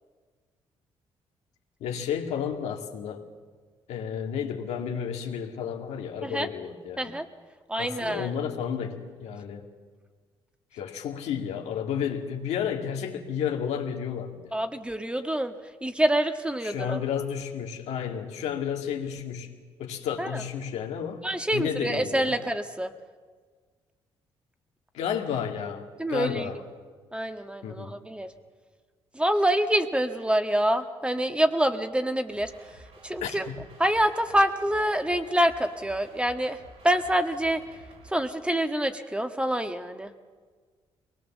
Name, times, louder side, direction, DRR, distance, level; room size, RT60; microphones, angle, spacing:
voice 1, 1.8-3.2 3.9-7.1 7.8-9.6 10.7-14.5 16.6-19.5 19.8-21.2 21.5-22.4 24.9-26.6 27.6-28.0 33.2-33.7, left 8 dB, 85° left, 3 dB, 2.2 m, -32 dB
voice 2, 7.7-8.3 14.5-15.5 15.8-17.0 20.2-20.4 21.2-22.9 26.0-26.5 27.1-28.3 29.1-32.5 33.0-33.4 33.8-36.6 36.8-37.6 38.1-40.1, right 1 dB, 10° right, 7 dB, 1.5 m, -26 dB
sound 1, 32.3-38.1, right 2 dB, 70° right, 7.8 m, -52 dB
22.5 x 19.0 x 7.4 m, 1.5 s
supercardioid pair, 65°, 11 cm